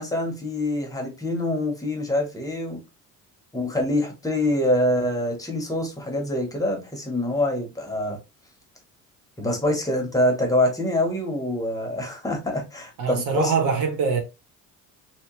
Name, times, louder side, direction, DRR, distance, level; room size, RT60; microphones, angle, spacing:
voice 1, 0.0-2.8 3.5-8.2 9.4-13.5, left 1 dB, 10° left, 0.9 m, -25 dB
voice 2, 13.0-14.2, right 5 dB, 85° right, 1.2 m, -23 dB
3.1 x 2.8 x 3.0 m
cardioid pair, 140°, 33 cm